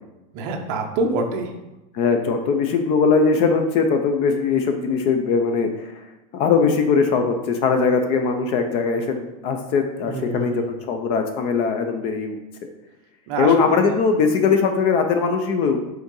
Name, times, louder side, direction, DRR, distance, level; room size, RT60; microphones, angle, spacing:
voice 1, 0.3-1.5 10.0-10.6 13.3-13.5, right 3 dB, 45° right, 3 dB, 0.8 m, -25 dB
voice 2, 1.9-6.0 6.3-12.4 13.4-15.8, left 5 dB, 30° left, 6 dB, 0.4 m, -20 dB
5.3 x 3.8 x 5.2 m, 0.98 s
supercardioid pair, 175°, 20 cm